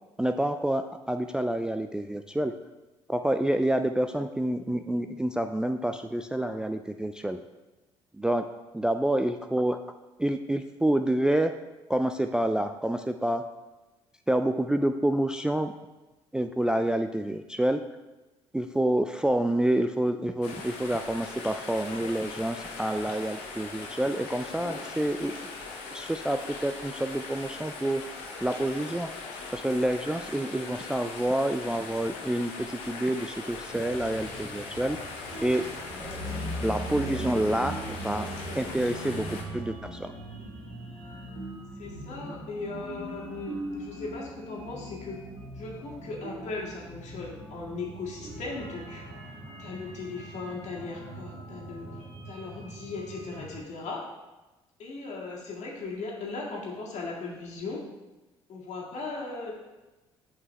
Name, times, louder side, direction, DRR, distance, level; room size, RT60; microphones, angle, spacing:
voice 1, 0.2-2.5 3.1-7.4 8.2-8.4 8.7-9.8 10.2-11.5 11.9-13.4 14.3-15.7 16.3-17.8 18.5-25.5 25.9-28.0 28.4-29.1 29.5-35.0 35.4-35.6 36.6-38.3 38.5-40.1, right 1 dB, 5° right, 7 dB, 0.3 m, -28 dB
sound 1, 20.4-39.4, left 3 dB, 70° left, 1.0 m, -40 dB
Underground Scare Em, 33.7-53.6, right 1 dB, 55° right, 2.4 m, -40 dB
voice 2, 41.8-45.2 45.5-49.0 49.6-51.9 52.2-54.0 54.8-57.8 58.5-59.5, left 3 dB, 55° left, -3 dB, 1.9 m, -38 dB
8.2 x 5.3 x 3.2 m, 1.1 s
hypercardioid pair, 50°, 14 cm